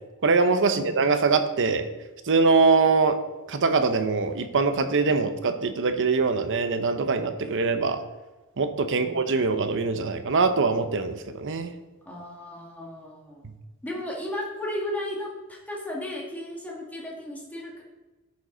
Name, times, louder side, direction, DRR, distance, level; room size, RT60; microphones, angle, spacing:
voice 1, 0.2-1.9 2.3-3.2 3.5-8.0 8.6-11.7, right 4 dB, 55° right, 9 dB, 0.7 m, -23 dB
voice 2, 12.1-13.5 13.8-17.8, left 1 dB, 5° left, -3 dB, 2.0 m, -35 dB
10.5 x 7.4 x 3.9 m, 1.2 s
head